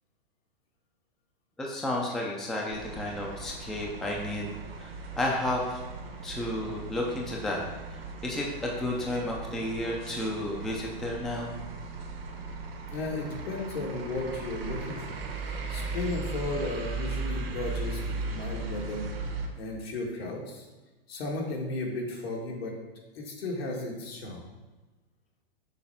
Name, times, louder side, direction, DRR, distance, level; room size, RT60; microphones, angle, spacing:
voice 1, 1.6-4.5 4.8-5.8 6.2-7.6 8.2-11.5, left 1 dB, ahead, -2 dB, 0.4 m, -32 dB
sound 1, 2.7-19.5, right 3 dB, 70° right, 1.3 m, -37 dB
voice 2, 12.9-15.2 15.5-19.1 19.6-20.7 21.1-22.7 23.1-24.5, left 2 dB, 80° left, -1 dB, 1.9 m, -34 dB
6.5 x 3.3 x 5.6 m, 1.2 s
hypercardioid pair, 145°, 30 cm